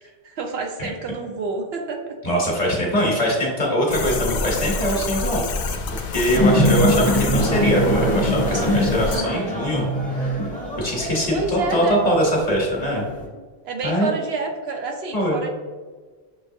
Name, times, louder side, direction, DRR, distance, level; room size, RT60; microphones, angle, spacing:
voice 1, 0.0-2.2 9.1-9.5 11.3-12.0 13.6-15.5, right 3 dB, 70° right, 3 dB, 0.9 m, -28 dB
voice 2, 2.2-5.5 6.0-13.1 13.8-14.1 15.1-15.4, equal, 40° left, -2 dB, 1.0 m, -22 dB
sound 1, 3.9-9.2, left 3 dB, 80° left, 0.8 m, -27 dB
sound 2, 6.3-13.2, equal, 10° left, 0.8 m, -23 dB
5.8 x 3.3 x 2.7 m, 1.4 s
omnidirectional pair, 1.1 m